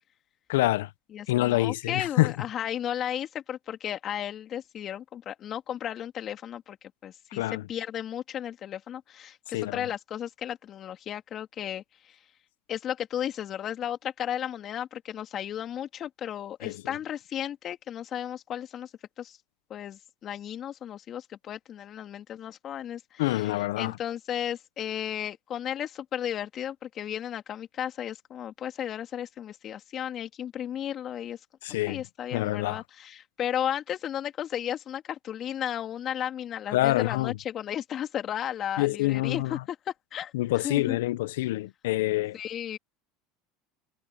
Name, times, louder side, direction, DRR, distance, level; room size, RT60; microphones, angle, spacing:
voice 1, 0.5-0.9 1.3-2.3 7.3-7.6 9.5-9.8 16.6-16.8 23.2-23.9 31.6-32.0 32.3-32.8 36.7-37.3 38.8-39.6 40.3-42.4, left 17 dB, 80° left, 0.9 m, -26 dB
voice 2, 1.1-12.2 12.7-18.9 19.2-19.4 19.7-31.4 31.9-41.0 42.3-42.8, left 10 dB, 45° left, 3.2 m, -34 dB
hypercardioid pair, 90°, 0 cm